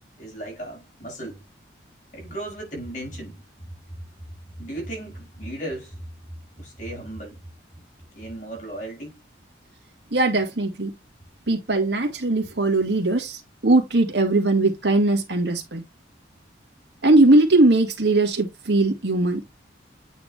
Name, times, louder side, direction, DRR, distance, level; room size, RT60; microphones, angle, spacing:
voice 1, 0.2-1.5 2.1-3.5 4.6-6.0 6.6-7.4 8.1-9.2, right 1 dB, 45° left, 5.5 m, -35 dB
voice 2, 10.1-10.9 11.5-15.8 17.0-19.4, right 2 dB, 70° right, 2.1 m, -20 dB
9.1 x 3.8 x 3.5 m
head